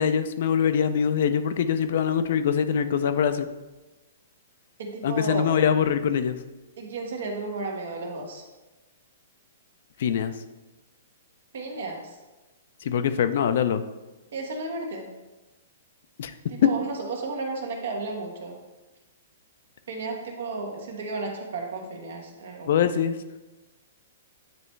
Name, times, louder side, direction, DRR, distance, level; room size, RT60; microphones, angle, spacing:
voice 1, 0.0-3.5 5.0-6.4 10.0-10.3 12.8-13.8 16.2-16.3 16.6-16.7 22.7-23.2, left 8 dB, 60° left, 10 dB, 0.4 m, -23 dB
voice 2, 4.8-5.5 6.8-8.4 11.5-12.2 14.3-15.1 16.5-18.6 19.9-22.7, right 3 dB, 70° right, 2 dB, 1.3 m, -33 dB
9.2 x 3.2 x 3.2 m, 1.1 s
hypercardioid pair, 150°, 0 cm